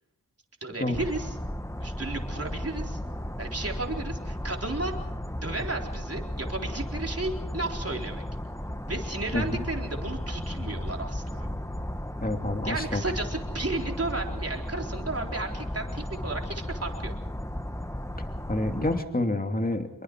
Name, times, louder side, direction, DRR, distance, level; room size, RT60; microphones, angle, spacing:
voice 1, 0.6-1.4 1.8-3.0 3.4-4.9 5.4-8.2 8.9-11.5 12.6-17.1, right 2 dB, 40° right, 2 dB, 4.0 m, -33 dB
sound 1, 0.9-19.0, left 1 dB, 10° left, 1.4 m, -34 dB
voice 2, 12.2-13.0 18.5-19.9, left 2 dB, 25° left, 5 dB, 2.7 m, -28 dB
26.0 x 23.5 x 4.7 m, 0.78 s
wide cardioid pair, 50°, 35 cm